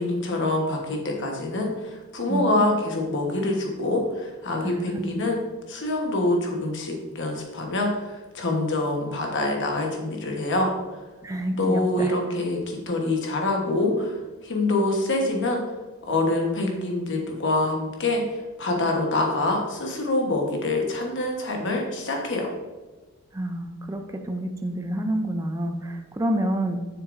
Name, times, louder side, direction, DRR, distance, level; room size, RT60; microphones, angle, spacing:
voice 1, 0.0-5.4 5.7-11.0 11.6-15.6 16.0-22.5, left 2 dB, 55° left, 1 dB, 1.2 m, -25 dB
voice 2, 2.3-2.7 4.6-5.1 11.2-12.2 23.3-26.8, right 1 dB, 15° right, 4 dB, 0.4 m, -28 dB
7.2 x 6.5 x 2.6 m, 1.2 s
head